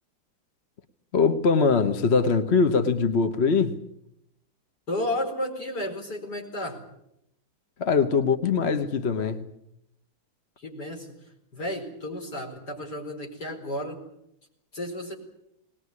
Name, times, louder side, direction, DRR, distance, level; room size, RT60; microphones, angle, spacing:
voice 1, 1.1-3.8 7.8-9.5, left 5 dB, 40° left, 1.2 m, -22 dB
voice 2, 4.9-6.8 10.6-11.2 11.5-14.0 14.7-15.1, left 1 dB, 65° left, 5.2 m, -32 dB
20.5 x 19.5 x 9.6 m
omnidirectional pair, 1.9 m